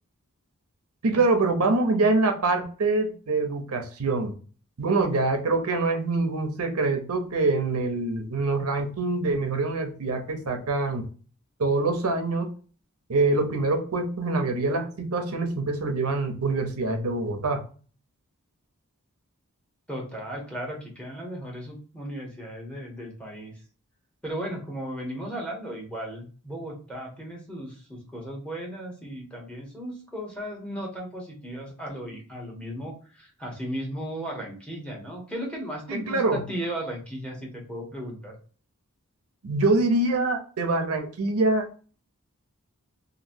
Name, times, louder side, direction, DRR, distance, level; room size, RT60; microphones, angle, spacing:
voice 1, 1.0-4.3 4.8-11.1 11.6-12.5 13.1-17.6 35.9-36.4 39.4-41.7, right 3 dB, 80° right, 5 dB, 0.7 m, -25 dB
voice 2, 19.9-23.5 24.2-38.4, right 1 dB, 5° left, -1 dB, 1.0 m, -36 dB
2.9 x 2.7 x 2.6 m, 0.39 s
head